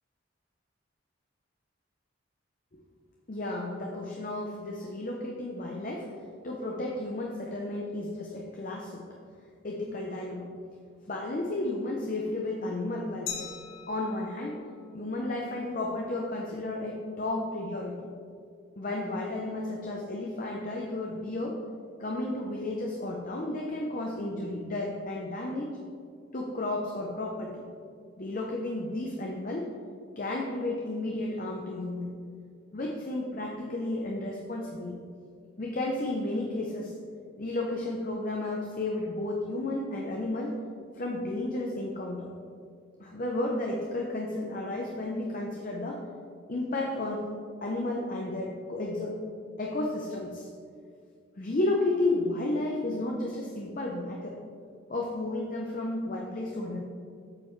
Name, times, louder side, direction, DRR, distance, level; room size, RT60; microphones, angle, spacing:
voice 1, 3.3-6.1 6.4-9.1 9.6-10.5 11.1-13.5 13.9-14.6 14.9-18.0 18.8-21.6 22.0-25.8 26.3-27.6 28.2-29.7 30.2-32.1 32.7-35.0 35.6-36.9 37.4-40.6 41.0-42.3 43.0-46.0 46.5-47.3 47.6-49.2 49.6-50.5 51.4-54.3 54.9-56.8, left 2 dB, 40° left, -1 dB, 0.6 m, -32 dB
Glass, 13.3-16.0, left 7 dB, 75° left, 1.4 m, -43 dB
8.6 x 6.9 x 3.2 m, 2.3 s
head